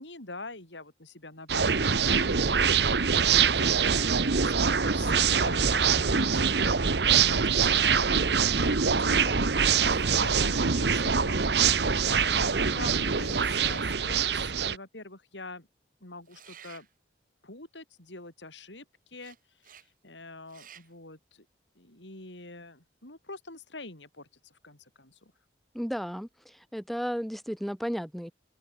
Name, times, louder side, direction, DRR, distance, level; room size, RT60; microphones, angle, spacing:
voice 1, 0.0-15.7 16.0-16.9 17.4-19.4 19.6-19.8 20.0-21.5 21.7-25.3, left 2 dB, 85° left, 6.6 m, -45 dB
sound 1, 1.5-14.8, right 6 dB, 65° right, 1.1 m, -24 dB
sound 2, 9.7-10.7 13.0-13.9 16.3-16.9 19.2-19.4 19.6-19.9 20.5-20.9, right 8 dB, 50° right, 7.6 m, -50 dB
voice 2, 25.7-28.3, equal, ahead, 2.6 m, -34 dB
open air
head